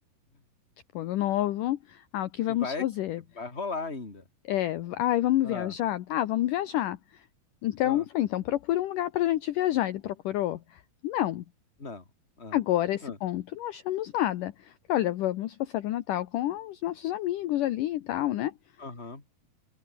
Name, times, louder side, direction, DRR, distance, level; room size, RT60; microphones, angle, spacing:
voice 1, 0.9-3.2 4.5-7.2 7.6-11.4 12.5-18.5, left 14 dB, 70° left, 2.4 m, -28 dB
voice 2, 2.5-2.9 3.4-4.2 5.4-5.7 7.8-8.0 11.8-12.0 12.4-12.6 13.0-13.2 18.8-19.2, left 3 dB, 15° left, 3.9 m, -36 dB
omnidirectional pair, 4.4 m